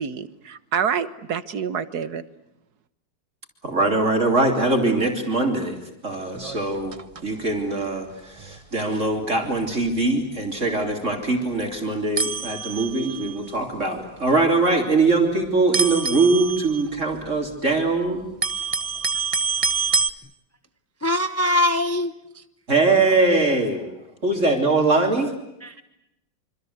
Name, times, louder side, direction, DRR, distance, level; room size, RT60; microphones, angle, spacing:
voice 1, 0.0-2.2, right 7 dB, 60° right, 14 dB, 1.8 m, -27 dB
voice 2, 3.6-5.8 6.0-6.9 7.2-18.2 22.7-23.8 24.2-25.3, right 3 dB, 40° right, 3 dB, 3.6 m, -22 dB
sound 1, 6.3-7.3 7.6-7.8 8.4-8.6 8.9-9.0 9.5-9.6 9.8-10.0 10.8-10.9 11.6-11.7 12.2-13.5 14.3-14.8 15.0-15.2 15.7-17.7 18.1-20.1, right 4 dB, 25° right, 0.8 m, -27 dB
voice 3, 21.0-22.1 25.6-25.8, left 1 dB, 15° left, 10 dB, 0.6 m, -22 dB
27.0 x 26.0 x 8.0 m, 0.86 s
omnidirectional pair, 1.9 m